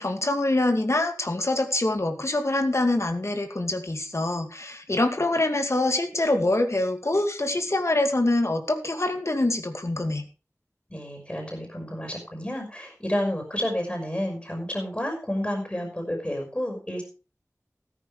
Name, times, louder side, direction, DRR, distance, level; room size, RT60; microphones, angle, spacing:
voice 1, 0.0-10.3, left 2 dB, 55° left, 6 dB, 2.4 m, -25 dB
voice 2, 10.9-17.0, equal, 25° left, 2 dB, 5.4 m, -30 dB
14.5 x 13.0 x 3.4 m, 0.34 s
wide cardioid pair, 50°, 6 cm